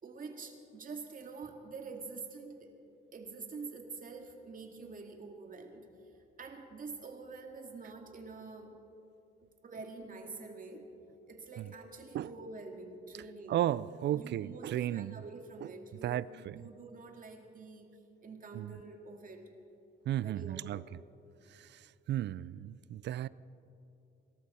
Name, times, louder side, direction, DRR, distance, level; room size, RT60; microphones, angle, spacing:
voice 1, 0.0-2.7 3.1-5.9 6.4-8.7 9.6-10.9 11.3-13.6 14.1-17.9 18.2-19.5 20.2-20.9, right 4 dB, 45° right, 2.2 m, -46 dB
voice 2, 13.5-15.2 15.6-15.7 16.0-16.6 18.5-18.8 20.1-20.8 21.6-21.7 22.1-23.3, right 12 dB, 60° right, 0.4 m, -34 dB
24.5 x 13.0 x 4.3 m
cardioid pair, 90°, 20 cm